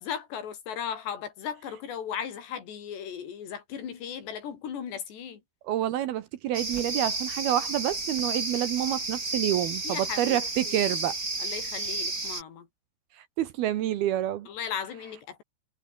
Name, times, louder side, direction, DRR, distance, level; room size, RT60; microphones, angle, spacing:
voice 1, 0.0-5.4 9.8-10.4 10.7-10.8 11.4-12.7 14.5-15.4, left 8 dB, 70° left, 5.7 m, -36 dB
voice 2, 5.6-11.2 13.4-14.5, right 12 dB, 70° right, 2.8 m, -28 dB
sound 1, 6.5-12.4, right 3 dB, 20° right, 4.3 m, -32 dB
omnidirectional pair, 5.0 m